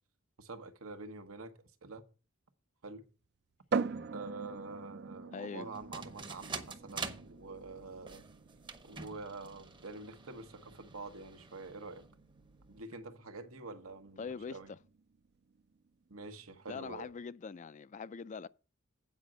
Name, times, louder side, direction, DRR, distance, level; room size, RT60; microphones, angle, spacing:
voice 1, 0.4-1.5 1.8-2.0 2.8-3.0 4.1-8.3 8.8-12.0 12.7-14.7 16.1-17.1, right 3 dB, 85° right, 1.2 m, -46 dB
sound 1, 3.7-17.2, right 5 dB, 55° right, 0.5 m, -44 dB
voice 2, 5.3-5.7 14.2-14.8 16.7-18.5, left 5 dB, 35° left, 0.3 m, -42 dB
sound 2, 5.7-12.8, right 4 dB, 25° right, 0.8 m, -47 dB
8.4 x 5.1 x 7.6 m
head